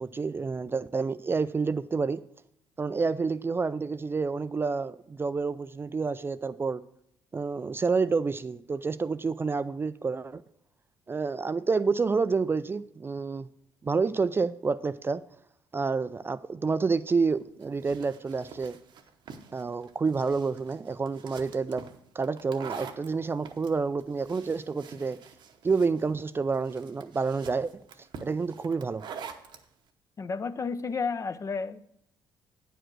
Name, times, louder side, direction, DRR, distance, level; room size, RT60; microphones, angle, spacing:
voice 1, 0.0-2.2 2.8-6.8 7.3-10.4 11.1-13.5 13.8-15.2 15.7-18.8 19.5-21.8 22.2-25.2 25.6-27.7 28.2-29.0, right 4 dB, 25° right, 14 dB, 0.3 m, -29 dB
sound 1, 17.3-29.6, right 6 dB, 60° right, 0.9 m, -46 dB
voice 2, 30.2-31.9, left 5 dB, 35° left, 12 dB, 0.6 m, -32 dB
8.9 x 5.1 x 6.1 m, 0.72 s
supercardioid pair, 70°, 9 cm